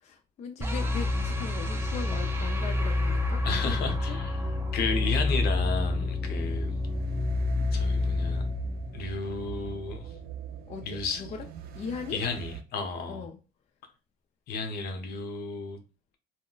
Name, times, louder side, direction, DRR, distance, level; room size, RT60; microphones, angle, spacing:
voice 1, 0.0-4.6 10.7-11.5 11.7-12.2 13.0-13.4, left 6 dB, 40° left, 0.4 m, -39 dB
sound 1, 0.6-9.7, left 2 dB, 15° right, 0.5 m, -28 dB
sound 2, 0.9-12.6, right 9 dB, 65° right, 0.4 m, -42 dB
voice 2, 3.4-4.4 4.7-6.7 7.7-8.4 8.9-10.1 10.8-11.2 12.1-13.3 14.5-15.8, left 4 dB, 70° left, 0.7 m, -33 dB
2.3 x 2.1 x 3.8 m
cardioid pair, 110°, 17 cm